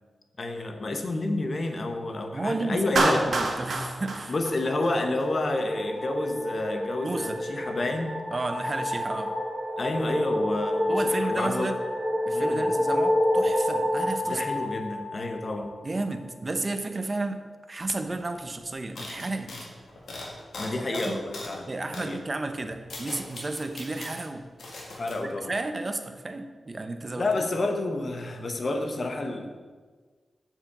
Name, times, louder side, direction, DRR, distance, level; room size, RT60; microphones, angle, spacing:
voice 1, 0.4-3.3 4.3-8.2 9.8-11.7 12.3-12.7 14.2-15.7 20.6-21.7 21.9-22.2 25.0-25.5 27.2-29.5, left 2 dB, 55° left, 5 dB, 1.2 m, -29 dB
voice 2, 2.3-4.3 7.0-7.4 8.3-9.3 10.9-11.8 12.2-14.6 15.8-17.4 17.7-19.5 20.9-21.2 21.7-24.4 25.2-27.6, right 2 dB, 40° right, 7 dB, 0.9 m, -32 dB
Clapping, 3.0-5.3, right 3 dB, 70° right, 1.2 m, -27 dB
sound 1, 4.5-15.9, left 1 dB, 5° left, 1.9 m, -29 dB
sound 2, 17.9-18.0 18.2-18.4 19.0-21.6 21.9-22.1 22.6-24.3 24.6-25.1, left 2 dB, 80° left, 2.0 m, -40 dB
7.1 x 5.9 x 6.9 m, 1.4 s
cardioid pair, 55°, 0 cm